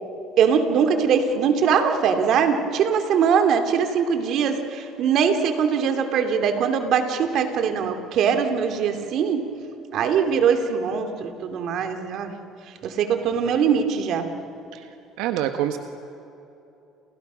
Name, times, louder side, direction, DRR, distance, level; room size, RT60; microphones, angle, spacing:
voice 1, 0.4-9.4 9.9-12.3 12.8-14.3, right 7 dB, 55° right, 6 dB, 2.6 m, -22 dB
voice 2, 15.2-15.8, right 11 dB, 85° right, 6 dB, 1.4 m, -26 dB
30.0 x 29.0 x 6.3 m, 2.9 s
cardioid pair, 130°, 0 cm